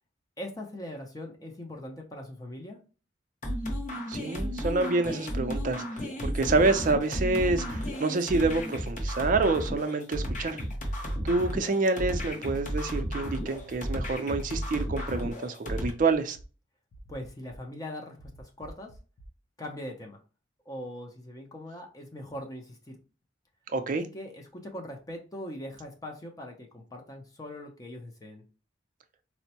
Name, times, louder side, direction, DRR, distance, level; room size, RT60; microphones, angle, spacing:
voice 1, 0.4-2.8 17.1-18.9 19.6-20.2 20.7-23.0 23.9-28.4, left 1 dB, 20° left, 0.5 m, -41 dB
sound 1, 3.4-15.9, equal, 40° left, 0.9 m, -33 dB
voice 2, 4.1-10.6 11.2-16.4 23.7-24.1, right 3 dB, 45° right, 0.4 m, -27 dB
sound 2, 13.5-13.9 14.4-14.5 14.9-15.3 15.9-16.4 16.9-17.6 18.2-19.3, right 2 dB, 75° left, 0.6 m, -50 dB
4.3 x 2.0 x 2.8 m
head